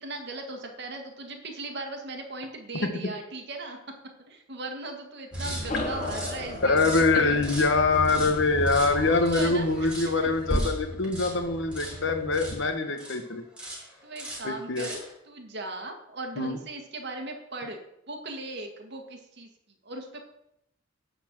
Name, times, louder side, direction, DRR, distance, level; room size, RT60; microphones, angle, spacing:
voice 1, 0.0-3.9 4.3-7.0 9.2-9.7 10.2-10.3 13.8-17.8 18.1-19.5 19.8-20.2, right 2 dB, 55° right, 3 dB, 1.7 m, -38 dB
sound 1, 5.3-13.2 13.6-13.9 14.2-15.1, right 1 dB, 5° right, 3.0 m, -35 dB
sound 2, 5.7-10.4, left 2 dB, 35° left, 1.0 m, -39 dB
voice 2, 6.6-13.4 14.4-14.9 16.4-16.6, left 3 dB, 65° left, 7 dB, 1.1 m, -24 dB
10.5 x 4.3 x 7.5 m, 0.81 s
head